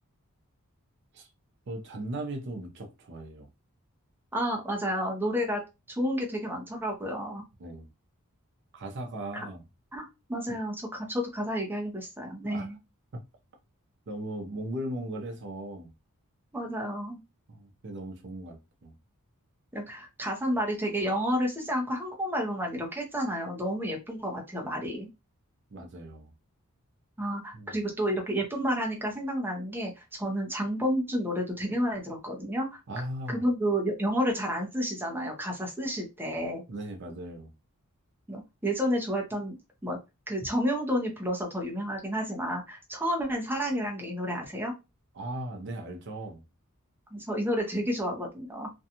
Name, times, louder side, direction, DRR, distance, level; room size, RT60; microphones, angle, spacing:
voice 1, 1.7-3.5 7.6-7.9 8.7-9.6 10.5-10.6 12.4-12.7 13.1-13.2 14.1-15.9 17.5-18.9 25.7-26.3 27.5-27.8 32.9-33.4 36.7-37.5 45.1-46.4, right 1 dB, 55° right, 0.5 m, -38 dB
voice 2, 4.3-5.6 5.9-7.4 9.3-9.4 9.9-12.8 16.5-17.2 19.7-25.1 27.2-32.8 33.3-36.6 38.3-39.6 39.8-40.0 40.3-44.7 47.1-48.7, equal, 10° right, 0.6 m, -30 dB
2.6 x 2.3 x 2.7 m
head